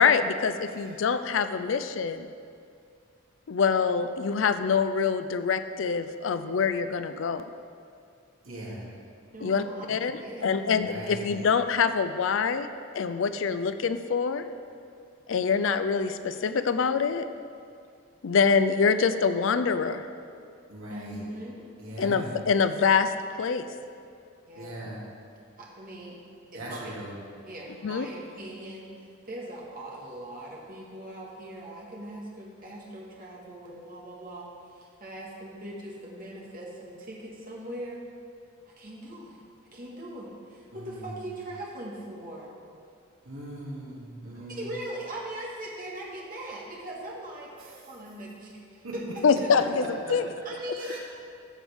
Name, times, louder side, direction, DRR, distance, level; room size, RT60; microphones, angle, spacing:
voice 1, 0.0-2.3 3.5-7.5 9.4-10.1 10.4-12.7 12.9-14.4 15.3-17.3 18.2-20.0 22.0-23.1 23.4-23.7 27.8-28.1 49.2-50.3, left 5 dB, 60° left, 11 dB, 0.4 m, -25 dB
voice 2, 8.4-8.9 10.8-11.4 20.7-21.2 21.8-22.4 24.6-25.0 26.5-27.2 40.7-41.0 43.2-44.6 48.8-48.9 50.8-51.0, right 1 dB, 70° right, -6 dB, 2.5 m, -40 dB
voice 3, 9.3-10.7 20.9-21.6 24.5-24.8 25.6-26.2 26.5-27.0 27.4-38.1 38.7-39.4 39.7-42.6 44.3-49.5 50.5-51.0, right 1 dB, 40° right, -4 dB, 1.7 m, -40 dB
13.5 x 7.1 x 3.6 m, 2.3 s
head